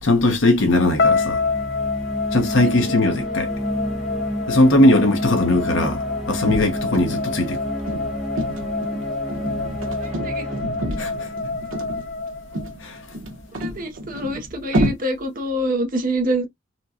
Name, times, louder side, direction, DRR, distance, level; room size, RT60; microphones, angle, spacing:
voice 1, 0.0-1.4 2.3-3.5 4.5-7.6 11.0-11.3 12.8-13.0, left 1 dB, 70° left, 1.0 m, -19 dB
sound 1, 0.8-12.4, equal, ahead, 0.5 m, -31 dB
sound 2, 1.0-13.1, left 4 dB, 50° left, 0.6 m, -27 dB
voice 2, 2.6-2.9 9.9-10.5 13.5-16.5, right 1 dB, 40° right, 0.7 m, -26 dB
sound 3, 6.5-14.9, right 1 dB, 75° right, 1.3 m, -29 dB
4.4 x 2.2 x 2.7 m
head